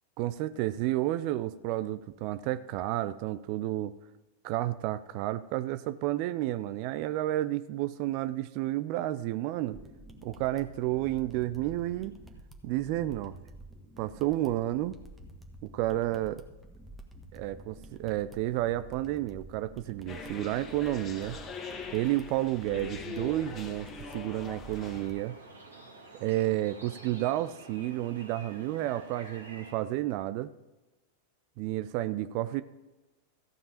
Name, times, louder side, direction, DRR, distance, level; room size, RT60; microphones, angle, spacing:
voice 1, 0.2-3.9 4.4-9.8 10.2-12.1 12.6-13.4 14.0-15.0 15.6-16.4 17.3-21.4 21.9-25.4 26.2-30.5 31.6-32.6, right 15 dB, 45° right, 13 dB, 0.5 m, -31 dB
sound 1, 9.7-25.2, right 1 dB, 10° right, 1.5 m, -50 dB
sound 2, 20.1-25.1, left 4 dB, 25° left, 1.8 m, -42 dB
sound 3, 24.7-29.7, right 2 dB, 80° right, 2.4 m, -49 dB
14.5 x 5.4 x 8.8 m, 1.1 s
figure-of-eight pair, 90°, 0 cm